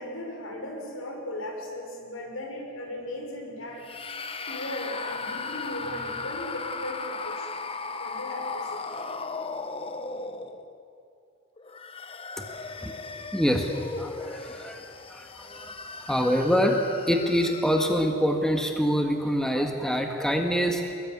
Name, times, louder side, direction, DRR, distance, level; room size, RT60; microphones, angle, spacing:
voice 1, 0.0-3.8 4.4-8.9, left 1 dB, 80° left, 2 dB, 5.6 m, -37 dB
sound 1, 3.8-10.9 11.6-18.1, left 4 dB, 25° left, 1.0 m, -37 dB
voice 2, 13.3-14.8 15.1-16.8 17.1-21.0, equal, 5° left, 3 dB, 1.6 m, -25 dB
24.0 x 21.5 x 9.5 m, 2.7 s
head